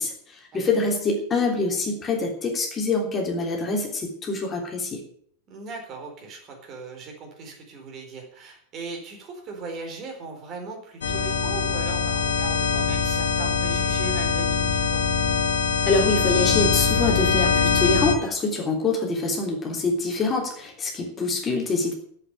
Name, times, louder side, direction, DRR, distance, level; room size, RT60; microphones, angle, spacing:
voice 1, 0.0-5.0 15.9-21.9, left 3 dB, 20° left, 0 dB, 3.3 m, -25 dB
voice 2, 5.5-15.0, right 4 dB, 35° right, 2 dB, 4.2 m, -38 dB
sound 1, 11.0-18.1, left 6 dB, 65° left, 1.9 m, -23 dB
11.0 x 7.9 x 9.1 m, 0.64 s
figure-of-eight pair, 90°, 0 cm